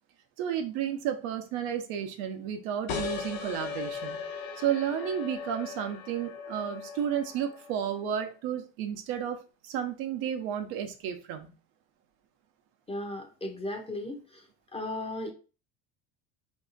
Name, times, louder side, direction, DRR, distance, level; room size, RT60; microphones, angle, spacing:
voice 1, 0.4-4.3 4.6-11.5, right 9 dB, 85° right, 6 dB, 0.7 m, -32 dB
sound 1, 2.9-8.1, left 6 dB, 60° left, 0.8 m, -38 dB
voice 2, 12.9-14.4 14.7-15.3, left 1 dB, 15° left, 3 dB, 0.6 m, -36 dB
2.7 x 2.3 x 3.9 m, 0.34 s
supercardioid pair, 110°, 39 cm